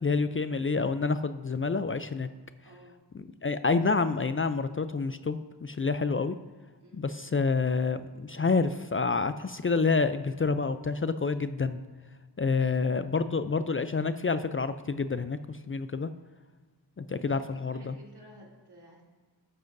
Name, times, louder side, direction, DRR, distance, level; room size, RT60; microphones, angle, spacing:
voice 1, 0.0-2.3 3.1-6.4 6.9-11.8 12.4-16.1 17.0-17.9, left 4 dB, 30° left, 11 dB, 0.4 m, -28 dB
voice 2, 2.6-3.0 6.8-7.0 12.4-12.9 17.2-19.0, equal, 65° right, -4 dB, 3.1 m, -53 dB
13.5 x 7.6 x 2.6 m, 1.4 s
cardioid pair, 40°, 43 cm